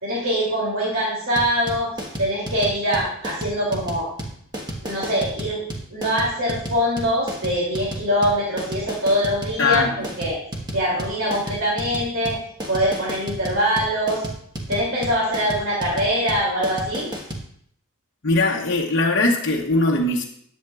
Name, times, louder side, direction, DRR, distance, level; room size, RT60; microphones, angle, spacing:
voice 1, 0.0-1.9 2.2-4.1 4.8-5.6 5.9-10.4 10.7-12.3 12.7-14.2 14.7-17.1, equal, 70° right, -6 dB, 2.8 m, -23 dB
sound 1, 1.4-17.4, right 1 dB, 20° right, 1.2 m, -31 dB
voice 2, 9.6-9.9 18.2-20.2, left 2 dB, 55° left, -1 dB, 0.9 m, -20 dB
10.5 x 7.8 x 2.4 m, 0.66 s
head